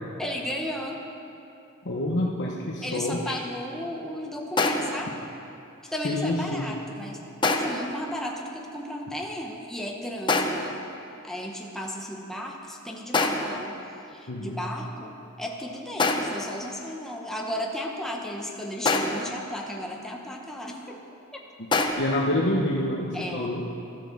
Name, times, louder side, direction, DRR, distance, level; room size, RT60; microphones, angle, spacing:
voice 1, 0.2-1.0 2.8-5.1 5.9-7.2 7.4-10.8 11.2-13.8 14.1-21.0 21.3-21.4 23.1-23.5, equal, ahead, -1 dB, 1.1 m, -34 dB
voice 2, 1.8-3.4 6.0-6.7 14.3-14.6 22.0-23.6, left 1 dB, 60° left, -3 dB, 1.2 m, -27 dB
sound 1, 4.6-5.1 7.4-7.9 10.3-10.8 13.1-13.6 16.0-16.5 18.9-19.4 21.7-21.9, left 3 dB, 25° left, 0.8 m, -25 dB
13.5 x 10.0 x 7.2 m, 2.8 s
head